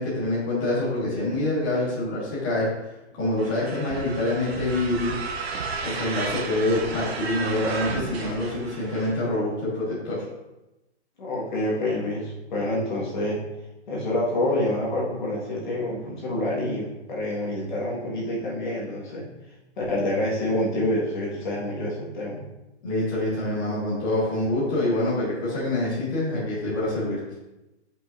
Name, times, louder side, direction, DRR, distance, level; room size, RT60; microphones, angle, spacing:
voice 1, 0.0-2.7 3.2-5.2 5.8-10.2 22.8-27.2, left 1 dB, 20° left, -9 dB, 1.5 m, -26 dB
sound 1, 3.4-9.1, right 4 dB, 60° right, 1.0 m, -33 dB
voice 2, 11.2-13.4 13.9-19.2 19.8-22.4, left 1 dB, 40° left, -5 dB, 1.6 m, -27 dB
9.2 x 5.4 x 2.6 m, 0.98 s
hypercardioid pair, 180°, 36 cm